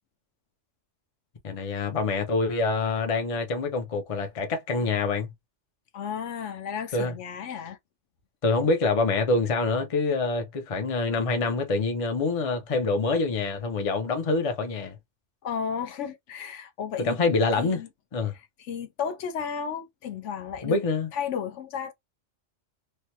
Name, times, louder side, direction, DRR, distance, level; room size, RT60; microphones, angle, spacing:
voice 1, 1.4-5.3 6.9-7.1 8.4-15.0 17.0-17.8 18.1-18.3 20.6-21.1, left 3 dB, 35° left, 0.6 m, -26 dB
voice 2, 5.9-7.8 15.4-17.2 17.5-17.9 18.3-20.8 21.1-21.9, left 7 dB, 75° left, 1.0 m, -33 dB
3.2 x 2.1 x 2.8 m
omnidirectional pair, 1.3 m